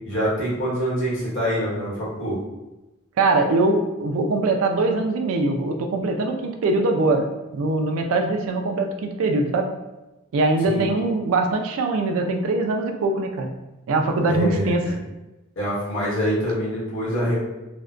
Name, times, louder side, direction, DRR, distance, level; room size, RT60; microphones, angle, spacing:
voice 1, 0.0-2.4 10.6-10.8 14.2-14.9 15.6-17.4, equal, 65° left, -8 dB, 1.1 m, -25 dB
voice 2, 3.2-7.3 7.5-9.7 10.3-13.5 13.9-14.8, right 2 dB, 75° right, 3 dB, 0.3 m, -22 dB
2.5 x 2.1 x 2.3 m, 1.0 s
head